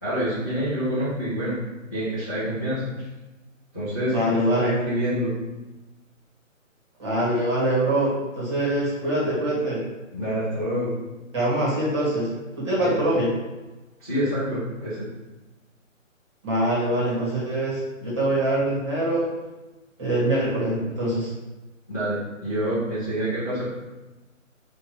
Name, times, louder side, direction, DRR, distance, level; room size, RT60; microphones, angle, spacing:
voice 1, 0.0-1.6 1.9-2.9 3.7-5.3 10.1-11.0 12.8-12.9 14.0-15.1 21.9-23.6, equal, 15° left, -16 dB, 0.6 m, -27 dB
voice 2, 4.1-4.7 7.0-9.8 11.3-12.3 12.6-13.3 16.4-19.3 20.0-21.3, right 1 dB, 20° right, -7 dB, 1.2 m, -24 dB
4.5 x 2.5 x 4.4 m, 1.1 s
hypercardioid pair, 170°, 40 cm